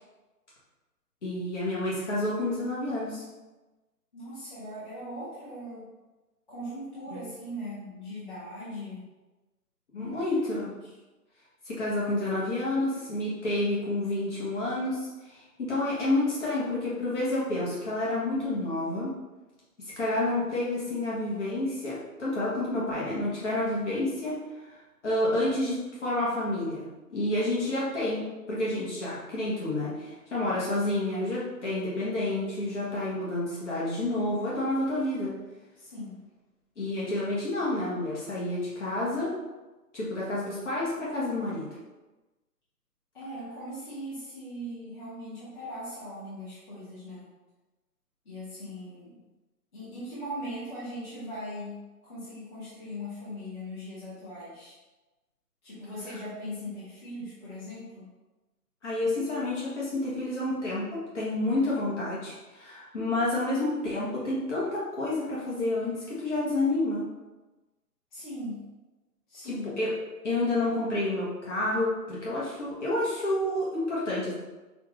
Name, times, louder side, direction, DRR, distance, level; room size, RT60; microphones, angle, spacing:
voice 1, 1.2-3.2 7.1-7.2 9.9-10.7 11.6-19.1 20.0-35.3 36.8-39.3 39.9-41.7 58.8-67.0 69.4-69.9 70.2-74.3, left 2 dB, 45° left, -7 dB, 1.3 m, -29 dB
voice 2, 4.1-5.9 6.5-9.1 9.9-10.9 35.7-36.2 43.1-47.2 48.2-49.2 49.7-54.7 55.6-58.1 68.1-68.6 69.3-69.7, equal, 30° left, -11 dB, 1.2 m, -40 dB
5.7 x 2.5 x 3.2 m, 1.1 s
hypercardioid pair, 160°, 47 cm